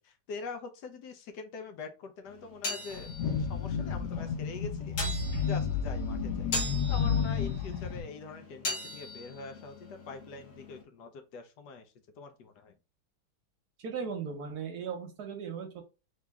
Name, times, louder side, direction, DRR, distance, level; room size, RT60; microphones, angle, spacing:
voice 1, 0.0-3.1 3.4-5.0 5.5-6.5 6.9-12.7, left 4 dB, 65° left, 6 dB, 1.2 m, -44 dB
sound 1, 2.3-10.8, left 1 dB, 50° left, 1.3 m, -41 dB
sound 2, 2.9-8.0, left 6 dB, 85° left, 1.5 m, -31 dB
voice 2, 13.8-15.8, right 6 dB, 65° right, 4 dB, 1.2 m, -37 dB
3.8 x 3.0 x 3.4 m, 0.29 s
omnidirectional pair, 2.1 m